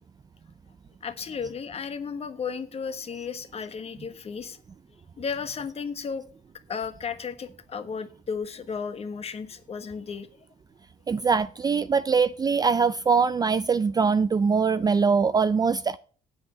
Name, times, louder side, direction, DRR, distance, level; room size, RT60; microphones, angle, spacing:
voice 1, 1.0-4.6 5.2-6.3 6.7-10.3, left 6 dB, 35° left, 1.3 m, -34 dB
voice 2, 11.1-16.0, right 5 dB, 25° right, 0.4 m, -22 dB
7.7 x 7.7 x 8.1 m
cardioid pair, 110°, 17 cm